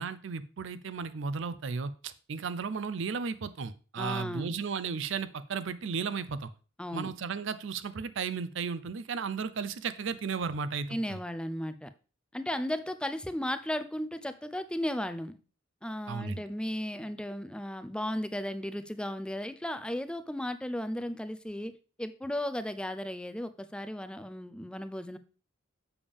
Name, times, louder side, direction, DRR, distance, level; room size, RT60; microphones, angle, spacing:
voice 1, 0.0-6.5 6.9-11.2 16.1-16.4, right 5 dB, 65° right, 13 dB, 0.5 m, -34 dB
voice 2, 4.0-4.6 6.8-7.1 10.9-11.9 12.3-15.4 15.8-21.7 22.0-25.2, left 1 dB, 5° left, 11 dB, 0.4 m, -35 dB
7.1 x 6.8 x 3.4 m, 0.35 s
head